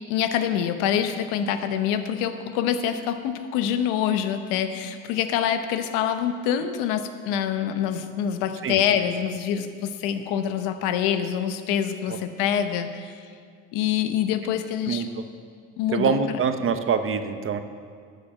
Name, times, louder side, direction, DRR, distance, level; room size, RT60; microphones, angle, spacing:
voice 1, 0.1-13.2 13.7-15.0 15.8-16.2, left 9 dB, 85° left, 9 dB, 0.9 m, -25 dB
voice 2, 14.9-15.2 15.9-17.6, right 6 dB, 40° right, 9 dB, 0.9 m, -25 dB
12.0 x 6.7 x 7.4 m, 2.1 s
supercardioid pair, 90°, 31 cm